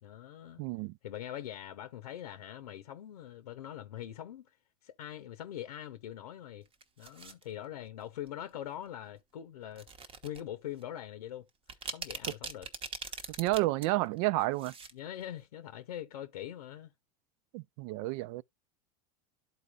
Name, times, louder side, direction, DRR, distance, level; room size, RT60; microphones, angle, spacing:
voice 1, 0.0-0.6 1.0-4.5 4.8-6.7 7.0-9.9 10.2-11.4 11.9-12.7 13.1-13.2 14.9-16.9, left 11 dB, 80° left, 0.8 m, -43 dB
voice 2, 0.6-1.0 13.4-14.7 17.5-18.4, right 19 dB, 55° right, 0.4 m, -30 dB
sound 1, 6.6-7.4 8.3-8.5 9.7-10.4 10.8-10.9 11.5-13.8 14.2-14.9 15.2-15.3, right 5 dB, 30° right, 1.0 m, -41 dB
12.5 x 4.2 x 2.4 m
hypercardioid pair, 95°, 19 cm